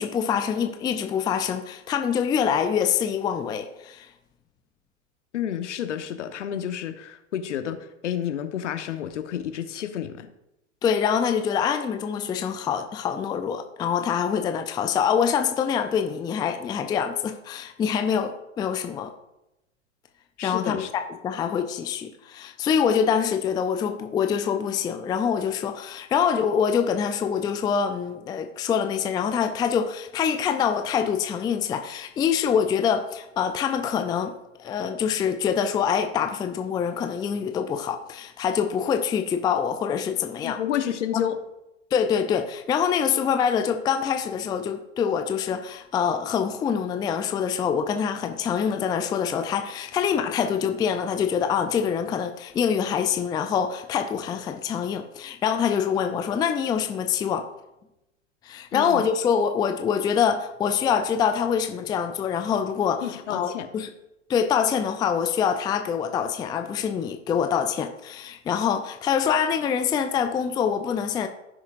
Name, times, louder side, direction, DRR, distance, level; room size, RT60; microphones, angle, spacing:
voice 1, 0.0-4.1 10.8-19.1 20.4-20.9 21.2-34.3 34.6-40.6 41.1-41.3 41.9-57.5 58.4-63.9 64.3-71.3, left 7 dB, 10° left, 7 dB, 0.4 m, -25 dB
voice 2, 5.3-10.3 20.4-20.9 40.4-41.4 58.7-59.0 63.0-63.7, left 10 dB, 65° left, 8 dB, 1.2 m, -30 dB
15.0 x 6.5 x 2.6 m, 0.89 s
hypercardioid pair, 105°, 38 cm